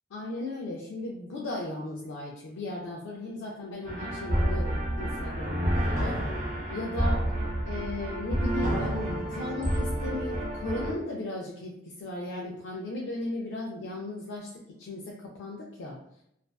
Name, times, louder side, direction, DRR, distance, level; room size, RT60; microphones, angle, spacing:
voice 1, 0.1-6.3 6.7-7.3 7.7-16.0, left 2 dB, 85° left, -3 dB, 0.4 m, -36 dB
sound 1, 3.8-10.9, right 1 dB, 40° right, 0.5 m, -29 dB
2.5 x 2.2 x 2.2 m, 0.77 s
head